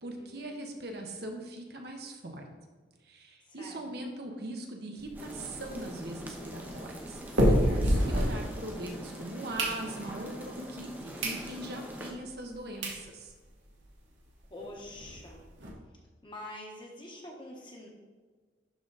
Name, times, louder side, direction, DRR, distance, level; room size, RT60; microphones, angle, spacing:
voice 1, 0.0-2.4 3.0-7.2 7.4-13.3, right 1 dB, 55° right, 2 dB, 1.0 m, -41 dB
voice 2, 3.5-3.8 7.4-8.0 14.5-15.4 16.2-17.9, left 1 dB, 25° left, -1 dB, 1.2 m, -46 dB
sound 1, 5.0-8.9 9.3-10.3 10.8-10.9 11.2-11.4 11.9-12.0 12.5-12.6 12.8-13.0 13.5-13.6 13.7-13.9 14.1-14.2 14.5-15.7, equal, 75° right, 1.7 m, -29 dB
sound 2, 5.1-12.1, right 1 dB, 10° right, 0.8 m, -43 dB
11.5 x 3.9 x 4.0 m, 1.4 s
head